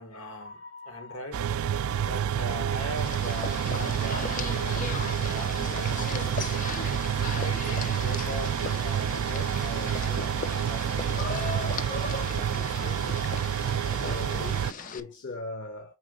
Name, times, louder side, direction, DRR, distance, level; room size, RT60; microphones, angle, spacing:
voice 1, 0.0-5.6 6.0-6.9 7.3-11.5 12.1-13.8 14.8-14.9, equal, 75° left, 1.8 m, -41 dB
sound 1, 1.3-14.7, right 8 dB, 75° right, 0.3 m, -28 dB
sound 2, 3.0-15.0, left 5 dB, 35° left, 0.5 m, -37 dB
voice 2, 13.6-15.9, left 2 dB, 55° left, 1.1 m, -40 dB
4.9 x 3.9 x 5.0 m
head